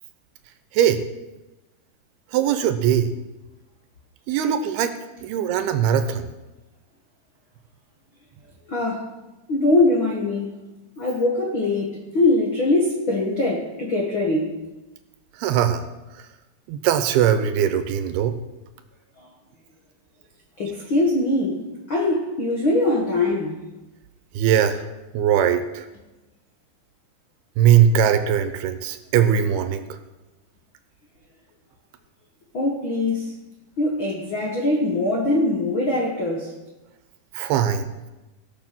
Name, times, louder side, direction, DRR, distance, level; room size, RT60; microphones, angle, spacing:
voice 1, 2.3-3.1 4.3-4.9 5.2-6.3 15.4-15.8 16.7-18.4 24.4-24.8 25.1-25.9 27.6-30.0 37.3-38.1, right 9 dB, 80° right, 2.6 m, -20 dB
voice 2, 8.7-9.1 9.5-10.6 11.0-14.5 20.6-21.6 21.9-23.6 32.5-33.3 33.8-36.5, left 2 dB, 65° left, 1.2 m, -22 dB
17.5 x 6.8 x 6.0 m
omnidirectional pair, 4.8 m